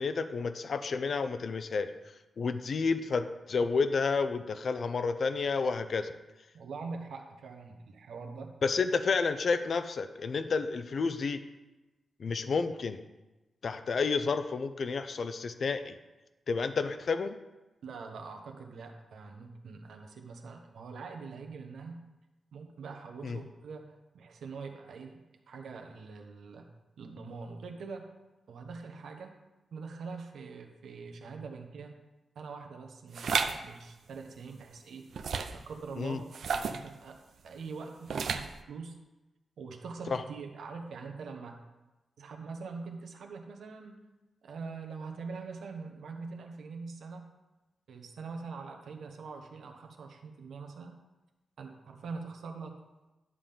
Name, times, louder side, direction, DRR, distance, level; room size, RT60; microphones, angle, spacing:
voice 1, 0.0-1.9 2.4-6.1 8.6-11.4 12.2-13.0 13.6-16.0 16.5-17.4 23.2-23.4 36.0-36.2 40.1-40.2, left 4 dB, 50° left, 10 dB, 0.5 m, -30 dB
voice 2, 6.5-8.5 17.8-22.1 22.5-26.7 27.0-28.1 28.5-29.4 29.7-31.9 32.3-35.1 35.5-39.0 39.6-41.6 42.2-44.0 44.4-47.3 47.9-51.0 51.6-52.9, right 4 dB, 85° right, 4 dB, 1.1 m, -43 dB
sound 1, 33.1-33.6 35.1-35.6 36.3-36.9 38.1-38.6, right 5 dB, 70° right, 0.5 m, -31 dB
11.0 x 3.8 x 6.9 m, 1.1 s
wide cardioid pair, 150°, 0 cm